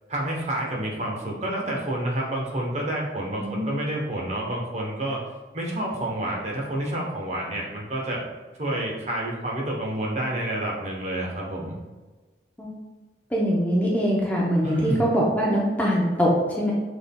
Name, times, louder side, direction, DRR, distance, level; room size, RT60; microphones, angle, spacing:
voice 1, 0.1-5.2 5.5-8.2 8.6-11.8 14.6-15.1, right 1 dB, 35° right, -2 dB, 0.9 m, -29 dB
voice 2, 13.3-16.7, equal, 10° left, -4 dB, 0.6 m, -23 dB
6.2 x 3.5 x 2.2 m, 1.3 s
head